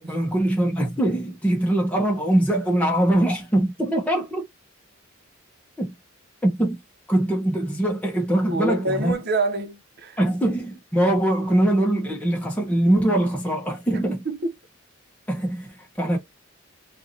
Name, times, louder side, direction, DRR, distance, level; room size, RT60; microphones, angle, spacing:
voice 1, 0.1-4.4 5.8-5.9 6.4-6.8 7.1-9.1 10.2-14.2 15.3-16.2, right 1 dB, 5° left, 1.3 m, -22 dB
voice 2, 8.5-10.2 13.9-14.5, right 2 dB, 50° right, 1.2 m, -27 dB
4.6 x 2.8 x 2.8 m
head